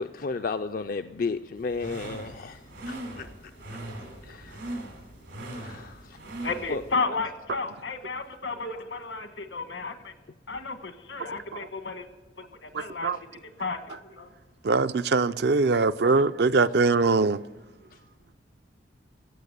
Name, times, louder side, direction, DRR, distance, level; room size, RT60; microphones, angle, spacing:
voice 1, 0.0-3.3 3.7-3.8 4.2-4.6 5.6-6.2 6.7-7.1, left 4 dB, 50° left, 0.4 m, -33 dB
sound 1, 1.6-6.9, right 1 dB, 85° right, 3.3 m, -40 dB
voice 2, 6.4-10.1 10.5-12.1 12.4-14.3, left 4 dB, 80° left, 1.4 m, -33 dB
voice 3, 12.7-13.2 14.6-17.4, right 4 dB, 60° right, 0.4 m, -22 dB
16.5 x 7.1 x 8.3 m
head